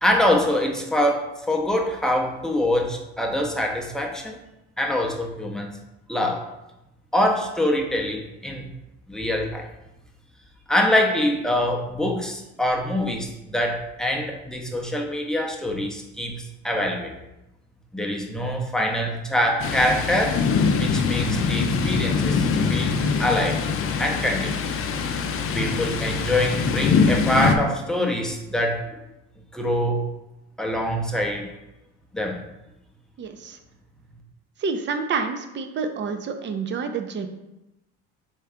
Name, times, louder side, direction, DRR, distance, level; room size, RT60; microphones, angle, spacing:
voice 1, 0.0-4.4 4.8-5.7 6.1-6.5 7.1-8.7 9.1-9.7 10.7-17.1 17.9-20.4 20.8-23.6 24.0-24.6 25.5-28.9 29.5-30.1 30.6-31.5 32.1-32.4, left 1 dB, ahead, 0 dB, 0.7 m, -24 dB
Thunder, 19.6-27.6, left 5 dB, 45° left, 0.5 m, -23 dB
voice 2, 33.2-33.6 34.6-37.3, right 5 dB, 35° right, 7 dB, 0.6 m, -28 dB
4.4 x 3.3 x 3.6 m, 0.93 s
cardioid pair, 100°, 31 cm